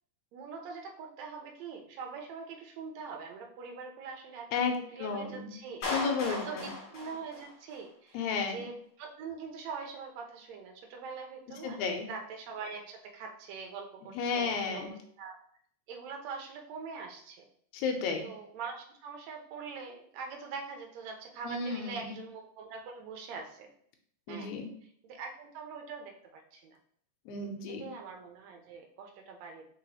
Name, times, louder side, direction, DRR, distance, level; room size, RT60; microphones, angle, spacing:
voice 1, 0.3-8.2 8.5-15.4 15.9-17.4 18.2-23.7 24.3-24.5 25.0-26.8 27.8-29.7, right 5 dB, 70° right, 2 dB, 1.7 m, -43 dB
voice 2, 4.5-5.5 5.9-6.7 8.1-8.7 11.6-12.1 14.1-14.9 17.7-18.3 21.4-22.1 24.3-24.7 27.3-27.9, left 5 dB, 75° left, 3 dB, 1.9 m, -33 dB
Clapping, 5.8-7.8, left 3 dB, 60° left, 1.4 m, -37 dB
4.6 x 3.9 x 2.9 m, 0.63 s
omnidirectional pair, 3.8 m